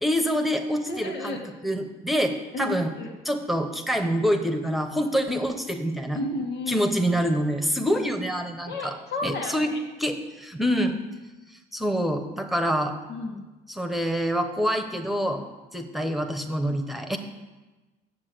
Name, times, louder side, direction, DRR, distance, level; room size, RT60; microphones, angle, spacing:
voice 1, 0.0-2.9 3.2-6.2 6.7-8.9 9.2-9.7 10.0-10.9 11.7-12.9 13.7-15.4 15.7-17.2, equal, ahead, 6 dB, 1.1 m, -26 dB
voice 2, 0.8-1.4 2.5-3.1 6.1-6.9 8.7-9.8 13.1-13.4, left 2 dB, 85° left, 1 dB, 2.2 m, -32 dB
8.7 x 7.3 x 7.8 m, 1.2 s
cardioid pair, 110°, 17 cm